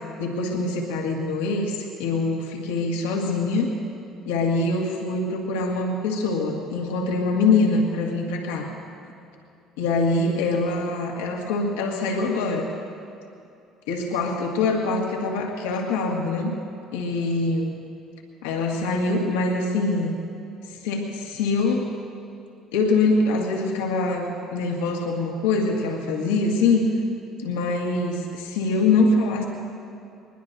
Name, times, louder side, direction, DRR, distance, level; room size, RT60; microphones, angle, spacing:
voice 1, 0.2-3.7 4.3-8.7 9.8-12.7 13.9-16.6 16.9-17.8 18.4-20.1 20.7-22.0 22.7-26.9 27.4-29.4, left 3 dB, 85° left, 0 dB, 1.8 m, -24 dB
23.0 x 21.0 x 2.7 m, 2.7 s
hypercardioid pair, 60°, 0 cm